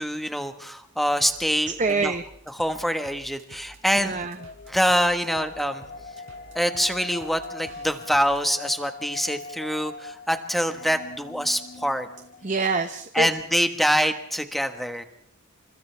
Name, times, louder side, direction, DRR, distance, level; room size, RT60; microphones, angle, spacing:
voice 1, 0.0-2.1 2.6-4.2 4.7-5.8 6.5-12.1 13.1-15.0, equal, ahead, 6 dB, 1.5 m, -25 dB
sound 1, 1.2-8.4, right 1 dB, 75° right, 4.2 m, -50 dB
voice 2, 1.8-2.2 3.9-4.4 12.4-13.3, right 4 dB, 35° right, 8 dB, 0.9 m, -25 dB
sound 2, 4.4-12.8, left 3 dB, 45° left, 1.0 m, -41 dB
29.0 x 26.0 x 3.5 m, 0.72 s
head